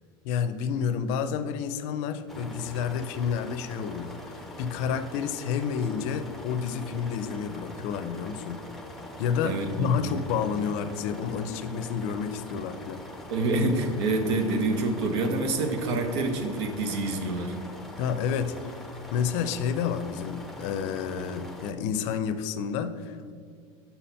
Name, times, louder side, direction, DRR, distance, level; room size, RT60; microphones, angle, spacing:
voice 1, 0.2-8.6 9.2-13.0 18.0-18.8 19.1-23.3, left 7 dB, 60° left, 11 dB, 0.5 m, -30 dB
sound 1, 2.3-21.7, left 1 dB, ahead, 0.6 m, -43 dB
voice 2, 9.4-10.2 13.3-17.5, right 2 dB, 90° right, 6 dB, 0.9 m, -27 dB
5.7 x 4.2 x 5.6 m, 2.2 s
supercardioid pair, 145°, 14 cm